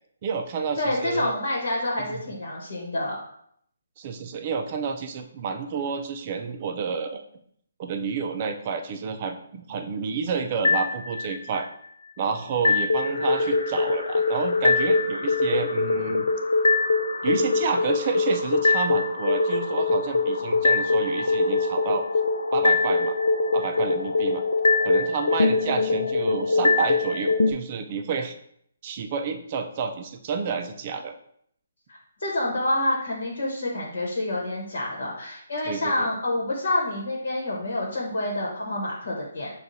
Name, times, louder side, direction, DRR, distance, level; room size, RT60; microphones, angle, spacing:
voice 1, 0.2-1.4 2.0-2.2 4.0-7.2 7.8-11.7 12.2-16.3 17.2-22.0 22.5-23.1 23.5-24.4 24.8-28.3 28.8-31.1 35.7-36.1, right 5 dB, 30° right, 4 dB, 0.4 m, -30 dB
voice 2, 0.8-3.2 31.9-39.5, left 1 dB, 65° left, -2 dB, 1.1 m, -28 dB
sound 1, 10.6-11.6 12.6-27.5, left 3 dB, 85° left, 0.4 m, -23 dB
6.3 x 2.3 x 2.7 m, 0.68 s
hypercardioid pair, 165°, 0 cm